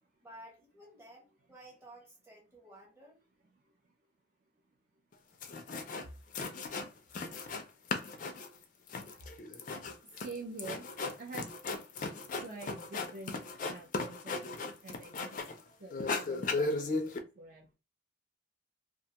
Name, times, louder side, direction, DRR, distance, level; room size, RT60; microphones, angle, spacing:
voice 1, 0.2-3.2, right 1 dB, 15° right, 0.8 m, -54 dB
voice 2, 3.5-3.9 6.0-6.2 10.2-10.9 11.2-11.5 12.4-15.4 15.8-17.7, right 3 dB, 40° right, 0.4 m, -47 dB
sound 1, 5.1-5.2 5.4-6.1 6.3-7.6 7.9-15.6 15.9-17.2, left 3 dB, 40° left, 0.3 m, -36 dB
2.4 x 2.2 x 2.7 m
head